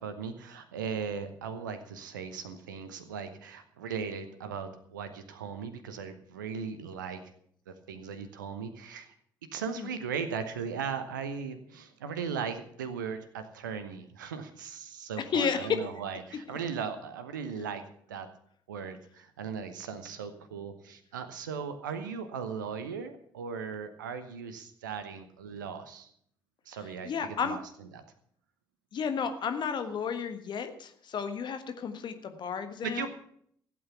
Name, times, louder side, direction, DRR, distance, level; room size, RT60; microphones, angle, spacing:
voice 1, 0.0-7.2 7.7-9.1 9.5-17.8 18.1-18.3 18.7-26.1 26.6-27.6 27.9-28.0 32.8-33.1, right 6 dB, 75° right, 10 dB, 1.0 m, -38 dB
voice 2, 15.2-15.7 27.0-27.6 28.9-33.1, left 6 dB, 50° left, 8 dB, 1.4 m, -32 dB
15.5 x 8.5 x 6.9 m, 0.64 s
figure-of-eight pair, 45°, 10 cm